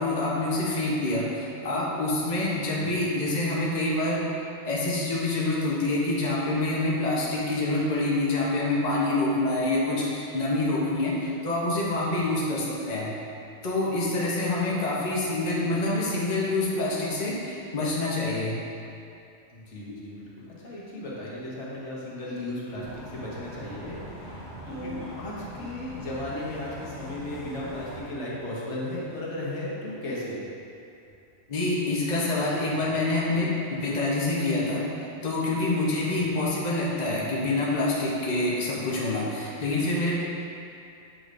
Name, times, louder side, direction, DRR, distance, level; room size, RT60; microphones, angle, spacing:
voice 1, 0.0-4.3 4.6-13.1 13.6-18.6 24.8-25.0 31.5-34.8 35.2-40.2, left 2 dB, 40° left, -5 dB, 0.9 m, -26 dB
voice 2, 19.5-30.4, left 1 dB, 75° left, -6 dB, 1.4 m, -35 dB
sound 1, 22.8-28.0, equal, 20° left, 1.3 m, -42 dB
7.7 x 4.9 x 2.5 m, 2.6 s
omnidirectional pair, 1.2 m